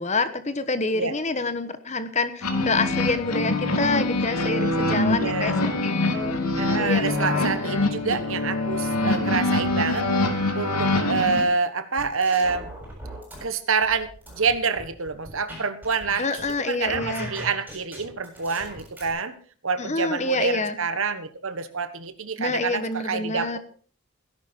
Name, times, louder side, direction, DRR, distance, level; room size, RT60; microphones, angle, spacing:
voice 1, 0.0-5.5 5.8-7.9 16.2-17.3 19.8-20.8 22.4-23.6, left 3 dB, 30° left, 11 dB, 1.1 m, -27 dB
sound 1, 2.4-11.4, left 2 dB, 85° left, 2.5 m, -24 dB
voice 2, 5.1-5.5 6.6-10.1 10.5-12.7 13.4-19.4 19.6-23.6, right 5 dB, 60° right, 12 dB, 1.3 m, -27 dB
sound 2, 12.0-13.4 13.8-16.5 16.8-19.1, right 1 dB, 5° right, 7.0 m, -39 dB
17.0 x 11.0 x 4.5 m, 0.42 s
head